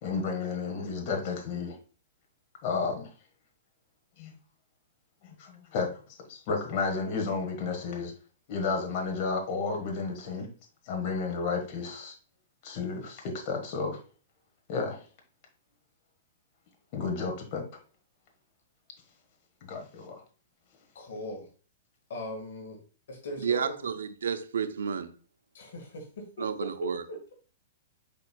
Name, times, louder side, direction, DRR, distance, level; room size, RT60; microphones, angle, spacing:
voice 1, 0.0-1.8 2.6-3.1 4.2-4.4 5.2-8.1 8.5-10.5 10.8-12.1 12.6-14.0 14.7-15.1 16.9-17.6 19.6-20.2, left 4 dB, 45° left, 1.3 m, -32 dB
voice 2, 20.9-21.5 22.1-22.8 23.1-23.9 25.5-27.3, left 1 dB, 70° left, 1.5 m, -39 dB
voice 3, 23.4-25.1 26.4-27.0, right 7 dB, 80° right, 0.5 m, -31 dB
5.2 x 4.3 x 2.2 m
hypercardioid pair, 130°, 0 cm